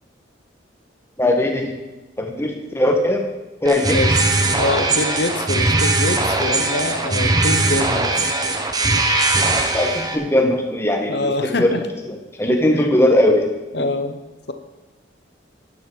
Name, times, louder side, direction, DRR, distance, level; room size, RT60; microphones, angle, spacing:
voice 1, 1.2-1.7 2.2-3.3 3.6-4.0 9.7-11.8 12.4-13.5, left 1 dB, 15° left, 3 dB, 1.4 m, -19 dB
sound 1, 3.6-10.2, right 2 dB, 20° right, 0.9 m, -20 dB
voice 2, 3.9-4.3 4.6-8.3 11.1-11.8 12.7-12.8 13.7-14.2, left 2 dB, 60° left, 8 dB, 1.0 m, -24 dB
12.0 x 10.0 x 4.6 m, 1.1 s
head